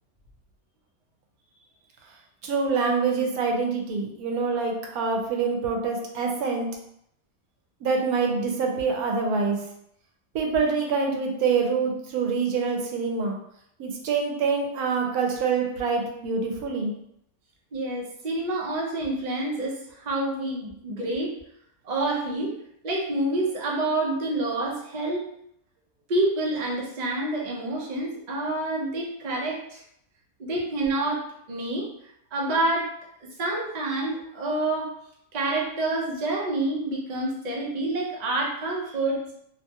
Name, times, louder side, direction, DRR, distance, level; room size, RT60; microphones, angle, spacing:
voice 1, 2.4-6.7 7.8-9.6 10.3-13.4 13.8-16.9, right 5 dB, 85° right, 1 dB, 1.1 m, -25 dB
voice 2, 17.7-21.3 21.8-22.5 22.8-25.3 26.1-29.8 30.4-31.9 32.3-32.9 33.2-35.0 35.3-39.2, right 2 dB, 50° right, -3 dB, 0.5 m, -28 dB
2.8 x 2.3 x 2.7 m, 0.74 s
omnidirectional pair, 1.6 m